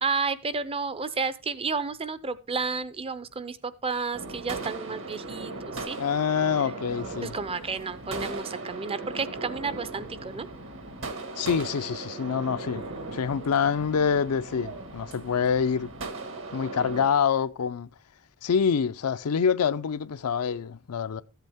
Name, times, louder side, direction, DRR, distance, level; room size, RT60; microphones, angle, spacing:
voice 1, 0.0-6.0 7.2-10.5 12.7-13.2, right 4 dB, 25° right, 0.6 m, -32 dB
sound 1, 4.1-17.1, right 3 dB, 60° right, 1.7 m, -38 dB
voice 2, 6.0-7.3 11.4-15.9 16.5-17.9 18.4-21.2, left 6 dB, 75° left, 0.5 m, -26 dB
14.0 x 8.1 x 3.5 m
head